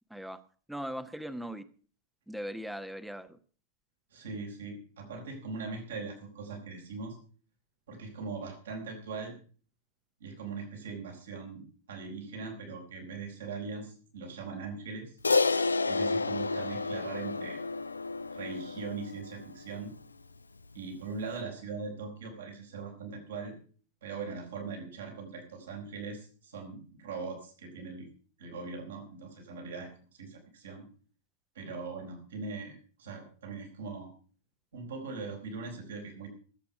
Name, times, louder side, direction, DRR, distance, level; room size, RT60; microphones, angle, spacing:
voice 1, 0.1-0.4 0.7-1.6 2.3-3.4, equal, ahead, 11 dB, 1.2 m, -39 dB
voice 2, 4.1-7.2 7.9-9.4 10.2-15.2 15.8-17.6 18.3-19.9 20.7-23.5 24.0-28.1 28.4-30.8 31.5-34.1 34.7-36.3, right 4 dB, 65° right, 3 dB, 4.4 m, -40 dB
Crash cymbal, 15.2-19.8, left 3 dB, 80° left, 0.6 m, -30 dB
18.0 x 8.6 x 5.8 m, 0.42 s
figure-of-eight pair, 90°, 0 cm